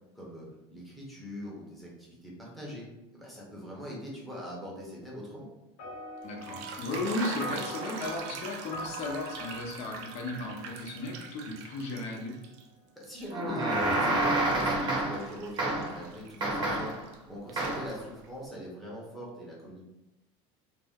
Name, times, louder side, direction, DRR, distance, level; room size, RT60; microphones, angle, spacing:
voice 1, 0.1-0.5 0.7-2.8 3.1-5.5 13.0-16.9 17.3-19.8, equal, ahead, -5 dB, 0.8 m, -42 dB
sound 1, 5.8-11.6, left 1 dB, 80° left, 0.9 m, -43 dB
voice 2, 6.2-12.4 16.5-16.8, left 2 dB, 55° left, 0 dB, 0.7 m, -35 dB
sound 2, 6.2-12.7 13.0-17.2 17.5-18.3, right 5 dB, 85° right, 0.4 m, -43 dB
sound 3, 13.3-15.3 15.6-16.0 16.4-17.0 17.6-17.9, right 2 dB, 35° right, 0.8 m, -28 dB
2.6 x 2.1 x 3.5 m, 0.97 s
cardioid pair, 140°, 14 cm